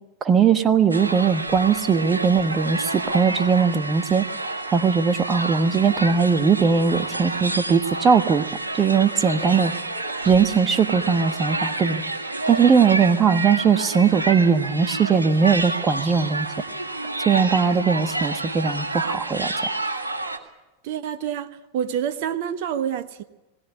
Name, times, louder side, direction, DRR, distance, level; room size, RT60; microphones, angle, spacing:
voice 1, 0.2-4.2 4.7-8.5 8.8-9.7 10.2-12.0 12.5-16.5 17.2-19.5, right 6 dB, 25° right, 1.3 m, -19 dB
sound 1, 0.9-20.4, right 2 dB, 80° right, 1.7 m, -29 dB
voice 2, 20.8-23.2, right 9 dB, 50° right, 1.1 m, -27 dB
20.5 x 17.5 x 8.4 m
figure-of-eight pair, 90°, 0 cm